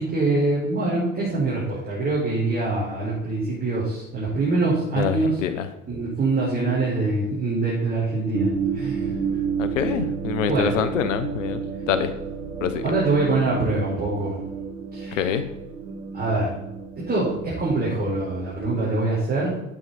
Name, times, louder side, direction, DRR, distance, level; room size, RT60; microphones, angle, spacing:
voice 1, 0.0-5.4 5.9-9.1 10.5-10.7 12.8-14.4 14.9-15.4 16.1-16.5 17.0-19.6, right 2 dB, 20° right, -7 dB, 5.0 m, -24 dB
voice 2, 5.0-5.7 9.6-11.6 11.9-12.1 12.6-12.8 15.1-15.4, left 8 dB, 65° left, 11 dB, 1.2 m, -25 dB
sound 1, 8.3-18.9, right 6 dB, 65° right, 2.7 m, -31 dB
12.0 x 8.8 x 4.3 m, 0.92 s
figure-of-eight pair, 70°, 41 cm